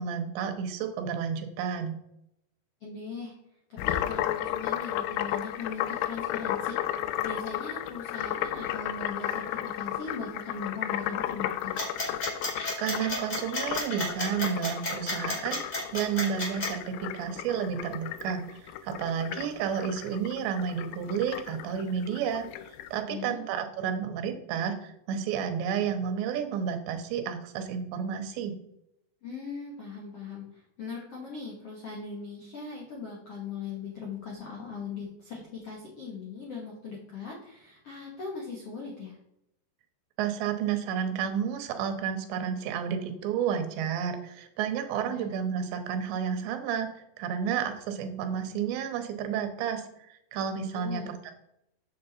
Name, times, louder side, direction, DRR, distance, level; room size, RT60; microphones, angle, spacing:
voice 1, 0.0-2.0 12.8-15.6 15.9-22.5 22.9-28.5 40.2-51.3, right 7 dB, 85° right, 6 dB, 3.0 m, -31 dB
voice 2, 2.8-3.3 3.8-11.8 23.1-23.4 29.2-39.2 45.0-45.3 50.7-51.1, left 5 dB, 70° left, -4 dB, 1.4 m, -39 dB
sound 1, 3.8-22.9, left 12 dB, 85° left, 2.4 m, -34 dB
sound 2, 11.8-16.7, left 1 dB, 35° left, 1.3 m, -32 dB
7.8 x 7.4 x 4.2 m, 0.80 s
omnidirectional pair, 5.2 m